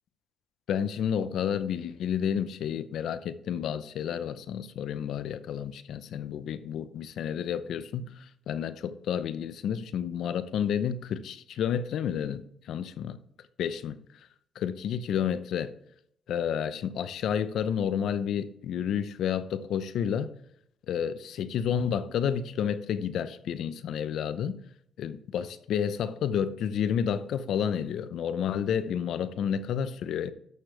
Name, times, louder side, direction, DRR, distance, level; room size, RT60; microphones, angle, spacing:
voice 1, 0.7-13.2 13.6-14.0 14.6-15.7 16.3-20.3 20.9-24.6 25.0-30.3, left 8 dB, 75° left, 0.6 m, -30 dB
12.0 x 6.7 x 3.3 m
cardioid pair, 90°, 0 cm